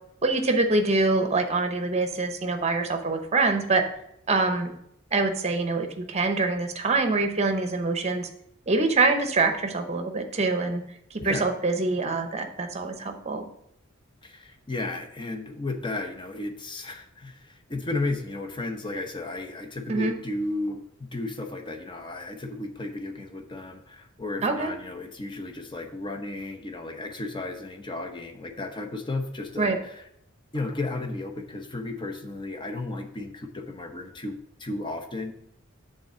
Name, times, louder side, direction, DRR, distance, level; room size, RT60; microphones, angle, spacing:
voice 1, 0.2-3.8 4.3-4.7 5.1-8.3 8.7-10.8 11.1-13.4 19.9-20.1 24.4-24.7 29.6-29.8, right 3 dB, 30° right, 6 dB, 0.8 m, -25 dB
voice 2, 11.2-11.5 14.2-30.0 30.5-35.3, left 2 dB, 25° left, 5 dB, 0.7 m, -34 dB
6.7 x 3.8 x 6.1 m, 0.75 s
head